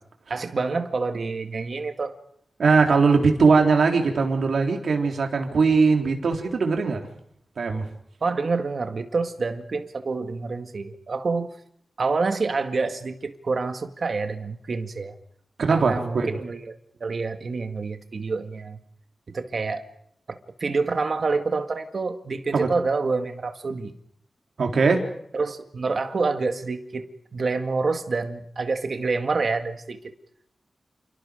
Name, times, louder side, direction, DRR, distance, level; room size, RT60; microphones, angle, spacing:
voice 1, 0.3-2.2 8.2-11.5 12.0-15.1 15.7-18.8 19.3-19.8 20.3-24.0 25.3-30.0, right 4 dB, 50° right, 2.0 m, -27 dB
voice 2, 2.6-7.1 7.6-7.9 15.6-16.3 22.5-22.7 24.6-25.0, right 4 dB, 75° right, 3.6 m, -20 dB
29.0 x 29.0 x 5.2 m
wide cardioid pair, 145°, 0 cm